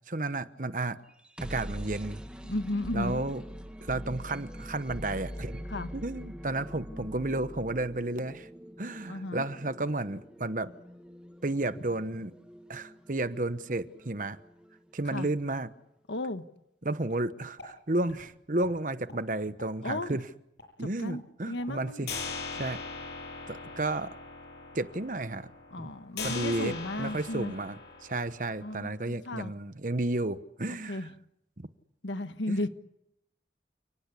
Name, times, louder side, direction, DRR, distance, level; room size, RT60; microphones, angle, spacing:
voice 1, 0.1-1.0 1.4-2.2 2.9-3.4 3.8-5.7 5.9-8.5 8.8-10.7 11.4-12.3 12.7-14.4 14.9-15.7 16.8-20.3 20.8-22.3 22.5-22.8 23.5-24.1 24.7-25.5 25.8-25.9 26.2-31.1 31.6-31.7 32.5-32.6, right 2 dB, 45° right, 1.0 m, -32 dB
sound 1, 1.1-14.9, equal, 5° right, 1.8 m, -44 dB
voice 2, 2.4-3.2 5.7-5.9 9.1-9.4 15.1-15.3 16.1-16.4 19.8-20.2 20.8-22.1 25.7-27.5 28.6-29.5 30.9-31.1 32.0-32.7, left 1 dB, 90° left, 1.4 m, -34 dB
sound 2, 17.1-17.2 17.6-17.7 18.1-18.3 18.6-18.7 19.1-19.2 19.6-19.7 20.1-20.2 20.6-20.7 21.1-21.2 21.6-21.7 22.1-28.8, left 4 dB, 65° left, 7.9 m, -41 dB
30.0 x 19.0 x 8.4 m
head